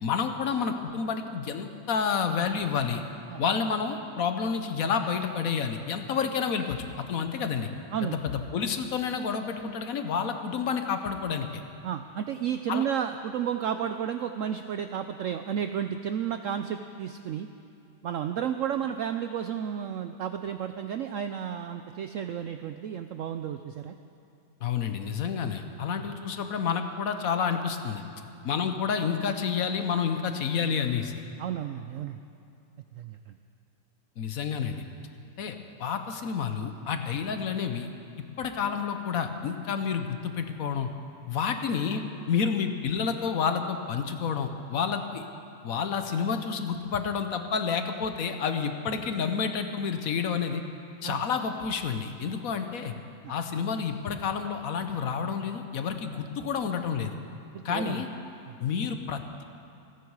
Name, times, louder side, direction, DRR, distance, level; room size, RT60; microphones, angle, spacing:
voice 1, 0.0-3.0 3.4-7.7 8.0-11.6 12.7-12.8 24.6-28.0 28.4-31.1 34.2-34.8 35.4-35.5 35.8-37.9 38.4-40.9 41.3-45.3 45.6-50.6 51.0-52.9 53.3-57.1 57.6-58.1 58.6-59.4, left 6 dB, 60° left, 7 dB, 1.2 m, -29 dB
voice 2, 11.8-17.5 18.0-23.9 31.4-32.2 32.9-33.3 51.0-51.2 53.2-53.3 57.5-58.0 58.5-58.6, right 9 dB, 85° right, 8 dB, 0.7 m, -32 dB
28.0 x 9.5 x 4.7 m, 2.6 s
omnidirectional pair, 1.9 m